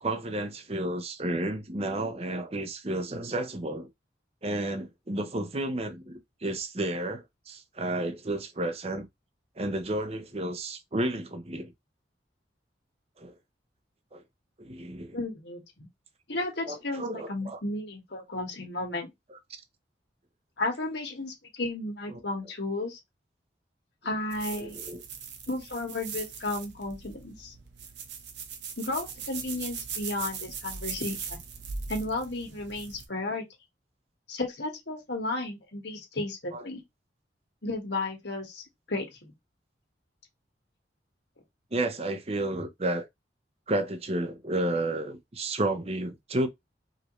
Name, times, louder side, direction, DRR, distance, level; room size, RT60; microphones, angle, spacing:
voice 1, 0.0-3.9 4.4-9.1 9.6-11.7 13.2-13.3 14.1-14.2 14.6-15.2 16.7-17.6 19.3-19.4 22.1-22.2 24.5-25.0 36.5-36.6 41.7-43.1 43.7-46.5, right 1 dB, 35° right, 0.7 m, -32 dB
voice 2, 15.1-15.9 16.3-17.0 17.3-19.1 20.6-23.0 24.0-24.8 25.5-27.5 28.8-31.4 31.9-33.4 34.3-36.8 37.6-39.2, left 2 dB, 70° left, 1.6 m, -33 dB
sound 1, 24.3-33.1, right 6 dB, 75° right, 0.9 m, -40 dB
5.0 x 2.7 x 3.1 m
head